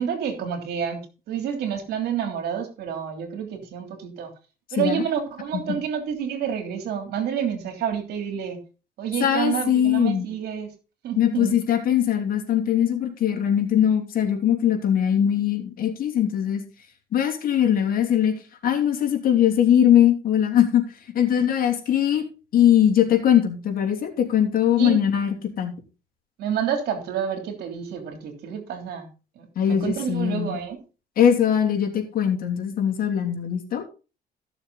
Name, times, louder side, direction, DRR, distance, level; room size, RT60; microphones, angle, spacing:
voice 1, 0.0-4.3 4.7-8.6 9.0-10.7 11.0-11.5 24.8-25.0 26.4-29.1 29.3-30.8, right 8 dB, 70° right, 5 dB, 3.2 m, -29 dB
voice 2, 9.2-10.3 11.2-16.6 17.1-20.8 21.1-22.2 22.5-25.8 29.5-30.6 31.2-33.8, left 9 dB, 60° left, 2 dB, 3.0 m, -21 dB
15.0 x 7.0 x 4.1 m, 0.33 s
cardioid pair, 110°, 17 cm